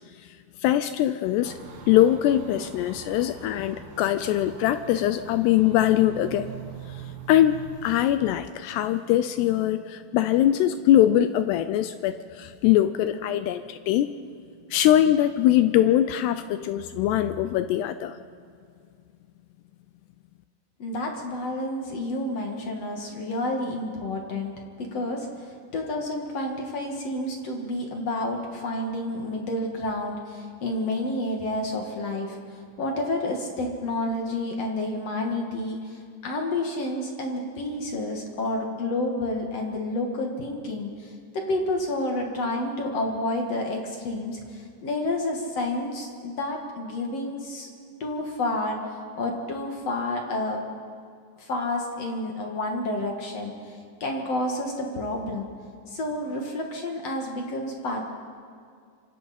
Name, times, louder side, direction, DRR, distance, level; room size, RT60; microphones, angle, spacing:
voice 1, 0.6-1.5 1.9-6.5 7.3-14.1 14.7-18.2, left 12 dB, 80° left, 11 dB, 2.6 m, -22 dB
sound 1, 1.4-8.0, right 6 dB, 60° right, 2.8 m, -43 dB
voice 2, 20.8-47.7 48.0-50.6 51.4-55.5 55.9-58.1, left 1 dB, 50° left, 1 dB, 2.1 m, -30 dB
26.0 x 25.0 x 4.3 m, 2.3 s
omnidirectional pair, 5.1 m